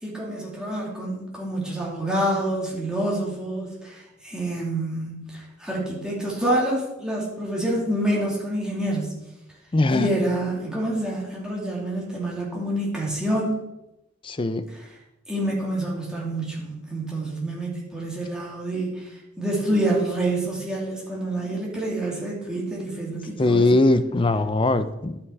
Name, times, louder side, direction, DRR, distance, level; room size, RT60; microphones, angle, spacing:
voice 1, 0.0-9.1 9.9-13.6 15.3-23.8, right 1 dB, 5° right, -5 dB, 2.6 m, -27 dB
voice 2, 9.7-10.1 14.2-14.7 23.4-25.2, left 2 dB, 25° left, 12 dB, 0.5 m, -20 dB
11.5 x 5.8 x 4.7 m, 0.92 s
head